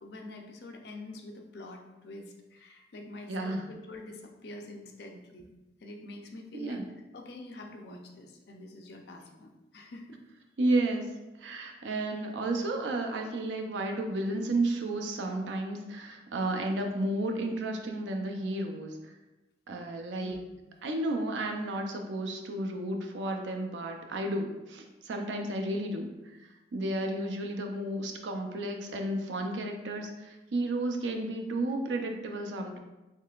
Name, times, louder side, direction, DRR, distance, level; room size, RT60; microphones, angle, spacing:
voice 1, 0.0-5.5 5.8-6.8 7.1-10.2 20.2-20.4, left 2 dB, 65° left, 2 dB, 0.5 m, -46 dB
voice 2, 3.3-3.6 6.5-6.9 10.6-11.1 11.4-19.1 19.7-20.4 20.8-26.4 26.7-32.8, right 2 dB, 85° right, 3 dB, 0.5 m, -32 dB
3.7 x 3.2 x 2.4 m, 1.1 s
head